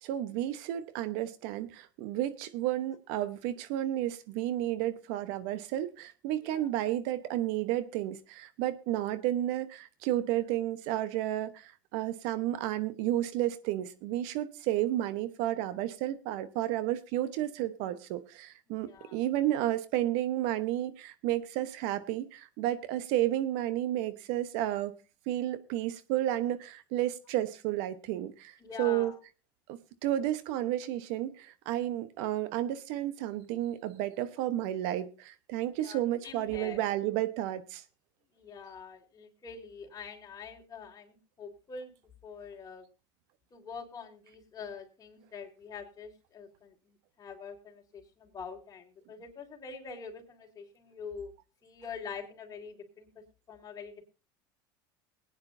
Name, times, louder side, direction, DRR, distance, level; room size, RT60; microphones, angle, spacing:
voice 1, 0.0-24.9 25.3-29.1 29.7-37.8, right 13 dB, 70° right, 1.0 m, -32 dB
voice 2, 18.7-19.2 28.6-29.2 35.8-36.8 38.3-41.9 42.2-42.9 43.5-51.3 51.6-53.1 53.5-54.0, left 5 dB, 30° left, 3.7 m, -45 dB
21.0 x 9.6 x 2.7 m
hypercardioid pair, 90°, 11 cm